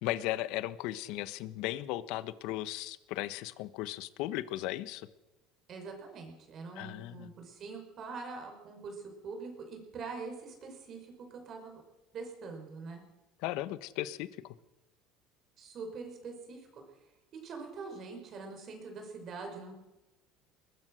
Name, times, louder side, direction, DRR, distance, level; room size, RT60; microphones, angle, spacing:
voice 1, 0.0-5.1 6.7-7.3 13.4-14.5, left 15 dB, 70° left, 15 dB, 1.2 m, -36 dB
voice 2, 5.7-11.8 12.1-13.0 15.6-16.8 17.4-19.8, right 4 dB, 40° right, 4 dB, 5.6 m, -44 dB
21.5 x 20.0 x 6.5 m, 1.0 s
cardioid pair, 140°, 0 cm